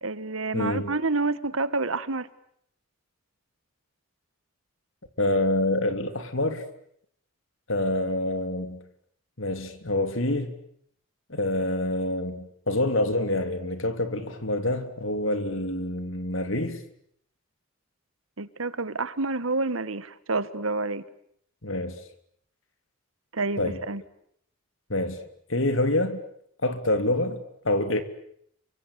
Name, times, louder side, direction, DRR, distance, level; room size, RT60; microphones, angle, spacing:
voice 1, 0.0-2.3 18.4-21.0 23.3-24.0, right 3 dB, 80° right, 1.6 m, -28 dB
voice 2, 0.5-0.9 5.2-6.6 7.7-8.8 9.4-10.6 11.3-16.8 21.6-22.0 23.6-23.8 24.9-25.2 25.5-26.2 26.6-28.0, left 1 dB, 70° left, 3.1 m, -26 dB
29.0 x 24.5 x 8.3 m
head